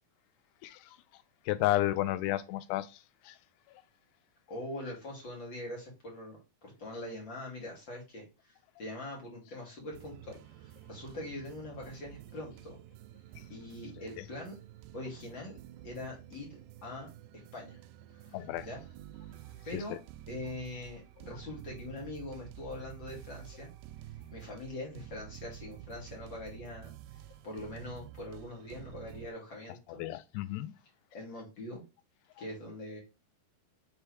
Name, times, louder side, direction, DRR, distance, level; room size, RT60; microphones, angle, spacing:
voice 1, 1.5-2.9 3.3-3.4 18.3-18.7 30.0-30.7, left 15 dB, 85° left, 2.5 m, -31 dB
voice 2, 4.5-12.8 13.5-14.6 14.9-15.6 15.8-17.1 17.5-17.8 18.2-18.8 19.6-20.0 20.3-23.7 24.3-26.9 27.4-30.0 31.1-31.8 32.4-33.0, left 1 dB, 40° left, 2.1 m, -43 dB
sound 1, 9.9-29.3, right 12 dB, 80° right, 2.3 m, -50 dB
6.8 x 3.4 x 4.6 m
omnidirectional pair, 4.5 m